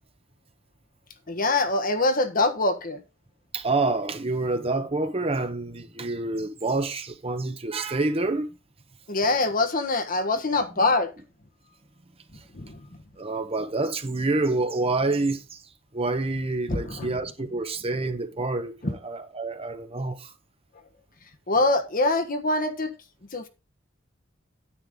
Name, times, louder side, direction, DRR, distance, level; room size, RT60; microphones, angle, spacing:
voice 1, 1.3-3.0 9.1-11.1 12.5-12.9 16.7-17.1 18.8-19.0 21.5-22.9 23.3-23.5, left 2 dB, 45° left, 1.3 m, -24 dB
voice 2, 3.5-8.5 13.2-15.4 15.9-20.3, right 2 dB, 30° right, 1.1 m, -27 dB
9.9 x 8.8 x 3.8 m
head